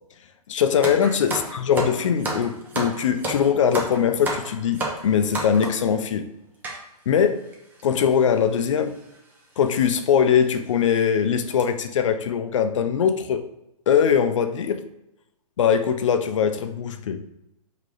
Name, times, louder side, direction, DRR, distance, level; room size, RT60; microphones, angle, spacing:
voice 1, 0.5-6.3 7.1-7.4 7.8-9.0 9.6-13.4 13.9-14.8 15.6-17.2, left 7 dB, 55° left, 8 dB, 0.4 m, -21 dB
sound 1, 0.8-5.9 6.6-6.8 7.5-7.6 7.8-8.0 9.0-9.2 9.6-9.7 10.3-10.4 10.8-11.0 11.4-11.6, right 2 dB, 10° right, 0.5 m, -31 dB
4.6 x 2.9 x 2.5 m, 0.87 s
figure-of-eight pair, 120°, 19 cm